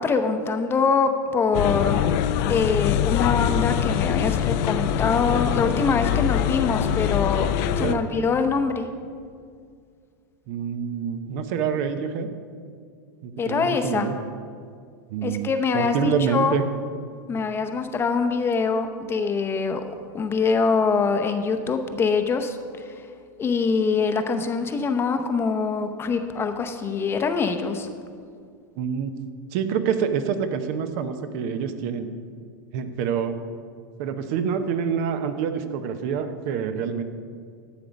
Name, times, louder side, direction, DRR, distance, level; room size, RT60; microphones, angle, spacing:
voice 1, 0.0-2.0 2.4-7.5 7.8-8.9 13.4-14.1 15.2-16.6 17.3-19.8 20.1-22.9 23.4-27.9, left 5 dB, 20° left, 7 dB, 0.8 m, -24 dB
sound 1, 1.5-7.9, left 9 dB, 55° left, 0.6 m, -23 dB
voice 2, 10.5-12.3 13.2-14.1 15.1-16.6 28.8-29.1 29.5-32.1 32.7-33.4 34.0-37.0, right 7 dB, 55° right, 9 dB, 0.8 m, -26 dB
11.5 x 6.9 x 5.2 m, 2.1 s
supercardioid pair, 125°, 11 cm